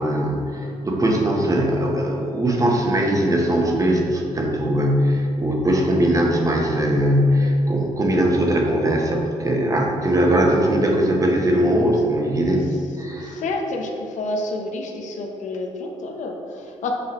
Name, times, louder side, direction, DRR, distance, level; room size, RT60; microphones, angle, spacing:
voice 1, 0.0-12.6 13.0-13.4, right 1 dB, 25° right, 0 dB, 1.0 m, -20 dB
voice 2, 13.2-16.9, left 2 dB, 70° left, 1 dB, 0.8 m, -29 dB
6.7 x 3.9 x 4.2 m, 2.6 s
cardioid pair, 95°, 13 cm